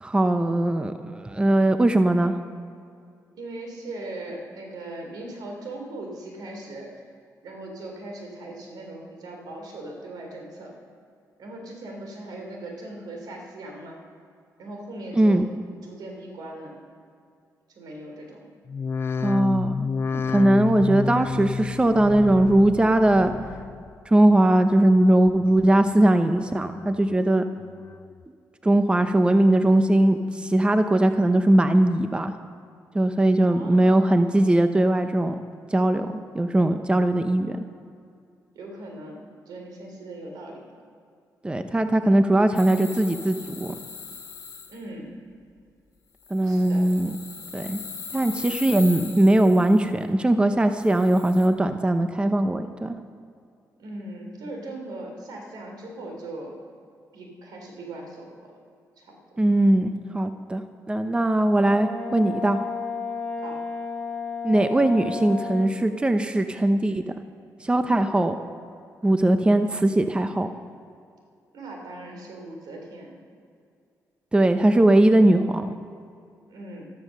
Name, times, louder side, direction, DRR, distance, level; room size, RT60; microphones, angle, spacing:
voice 1, 0.0-2.3 15.2-15.4 19.2-19.9 20.1-23.3 24.1-27.4 28.6-32.3 32.9-35.4 35.7-36.1 36.3-37.6 41.4-43.7 46.3-47.1 47.5-47.8 48.1-53.0 59.4-60.6 60.9-62.6 64.4-67.0 67.6-68.3 69.0-70.5 74.3-75.7, right 1 dB, 15° right, 8 dB, 0.8 m, -20 dB
voice 2, 3.3-7.1 7.4-10.7 11.4-14.0 14.6-15.5 15.8-16.7 17.7-18.5 29.3-29.5 33.5-34.3 38.5-40.6 44.7-45.1 46.4-46.9 53.8-56.6 57.1-58.5 59.0-59.1 61.3-61.5 63.4-63.6 71.5-73.2 76.5-76.8, right 2 dB, 85° right, 1 dB, 3.6 m, -39 dB
sound 1, 18.7-24.0 24.3-24.9 25.4-26.1 26.5-27.2 27.6-28.2 28.7-29.3 29.8-29.9, left 5 dB, 35° left, 0.3 m, -31 dB
sound 2, 42.5-44.8 46.2-49.8 50.8-51.5, left 6 dB, 60° left, 2.6 m, -39 dB
Brass instrument, 61.7-65.8, left 4 dB, 10° left, 1.9 m, -32 dB
13.5 x 12.5 x 6.7 m, 2.3 s
cardioid pair, 100°, 7 cm